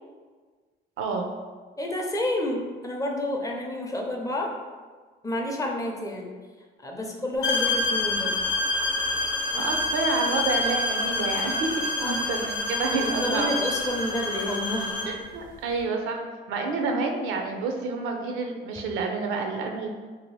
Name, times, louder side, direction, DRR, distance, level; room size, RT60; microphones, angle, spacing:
voice 1, 1.0-1.3 7.0-7.2 9.5-11.7 12.1-13.5 15.1-16.2 16.5-19.9, right 4 dB, 85° right, 3 dB, 0.5 m, -29 dB
voice 2, 1.8-4.5 5.2-6.3 6.8-8.4 12.0-12.3 12.7-15.2, left 1 dB, 15° left, 0 dB, 0.5 m, -30 dB
sound 1, 7.4-15.2, left 2 dB, 90° left, 0.6 m, -27 dB
2.8 x 2.6 x 3.0 m, 1.4 s
cardioid pair, 90°, 20 cm